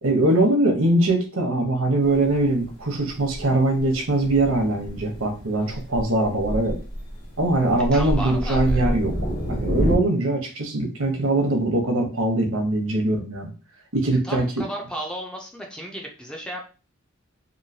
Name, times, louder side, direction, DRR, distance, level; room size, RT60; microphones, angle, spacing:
voice 1, 0.0-6.8 7.4-13.5 13.9-14.5, right 2 dB, 80° right, 3 dB, 0.9 m, -22 dB
Thunder, 2.0-10.0, equal, 55° left, 1.0 m, -29 dB
voice 2, 7.9-8.8 14.2-16.6, right 1 dB, 5° left, 0 dB, 0.4 m, -34 dB
3.1 x 2.6 x 2.7 m, 0.34 s
head